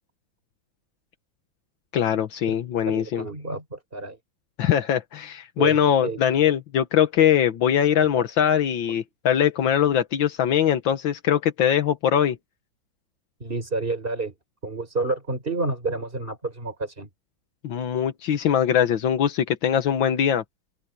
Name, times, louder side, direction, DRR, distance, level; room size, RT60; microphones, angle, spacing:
voice 1, 1.9-3.3 4.6-12.4 17.6-20.4, left 9 dB, 85° left, 1.9 m, -22 dB
voice 2, 2.8-4.2 5.6-6.2 7.9-8.3 8.9-9.0 13.4-14.3 14.6-17.1, right 3 dB, 25° right, 4.3 m, -30 dB
omnidirectional pair, 2.1 m